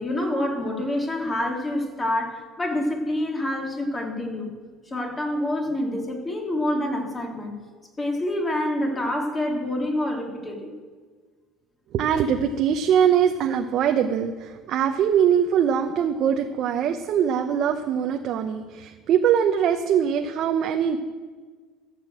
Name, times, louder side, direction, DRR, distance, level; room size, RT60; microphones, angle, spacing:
voice 1, 0.0-4.6 4.9-7.6 8.0-10.7, left 1 dB, 20° left, 2 dB, 2.7 m, -27 dB
voice 2, 11.9-21.0, right 8 dB, 50° right, 5 dB, 0.8 m, -22 dB
14.0 x 6.7 x 7.8 m, 1.5 s
cardioid pair, 120°, 0 cm